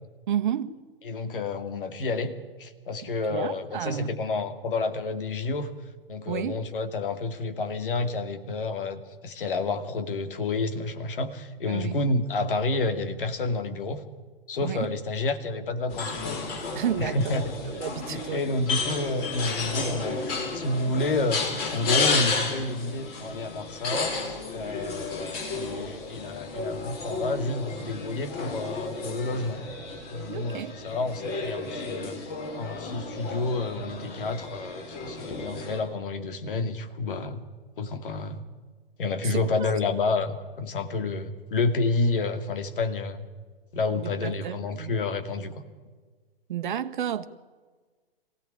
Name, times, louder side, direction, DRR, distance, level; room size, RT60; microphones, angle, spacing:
voice 1, 0.3-0.7 3.0-4.2 6.3-6.6 11.7-12.0 14.6-14.9 16.7-17.4 17.7-18.4 30.3-30.7 39.2-39.7 43.9-44.9 46.5-47.2, right 9 dB, 50° right, 10 dB, 1.4 m, -31 dB
voice 2, 1.1-5.7 6.1-14.0 14.5-16.4 17.0-17.4 18.1-20.2 20.5-21.4 21.7-24.1 24.5-29.6 30.1-32.2 32.5-37.4 37.8-38.4 39.0-43.3 43.7-45.6, left 3 dB, 60° left, 9 dB, 2.3 m, -29 dB
sound 1, 15.9-35.8, left 3 dB, 30° left, 5.0 m, -32 dB
24.0 x 16.5 x 9.9 m, 1.4 s
figure-of-eight pair, 115°, 30 cm